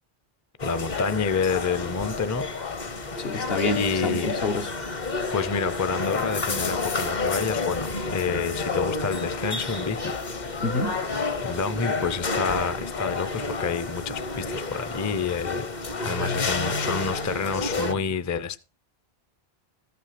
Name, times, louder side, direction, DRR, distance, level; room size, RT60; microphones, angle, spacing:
sound 1, 0.6-17.9, left 3 dB, 45° left, 1.1 m, -30 dB
voice 1, 0.6-2.5 3.8-4.3 5.3-10.2 11.4-15.6 16.0-18.6, left 5 dB, 20° left, 0.5 m, -28 dB
voice 2, 3.2-4.7 10.6-11.0 16.0-17.4, left 2 dB, 65° left, 1.4 m, -29 dB
14.0 x 5.9 x 5.8 m
omnidirectional pair, 1.1 m